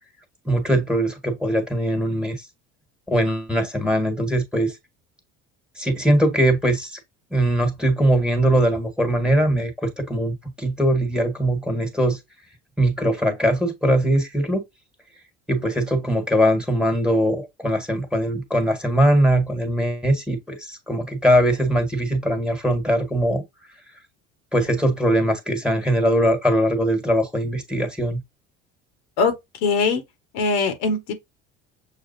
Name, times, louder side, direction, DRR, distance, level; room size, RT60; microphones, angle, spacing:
voice 1, 0.4-2.4 3.1-4.7 5.8-7.0 7.3-12.2 12.8-14.6 15.5-23.4 24.5-28.2, right 1 dB, 5° right, 1.6 m, -21 dB
voice 2, 29.6-30.0 30.3-31.1, left 4 dB, 75° left, 1.5 m, -21 dB
6.4 x 2.4 x 2.6 m
supercardioid pair, 90°, 30 cm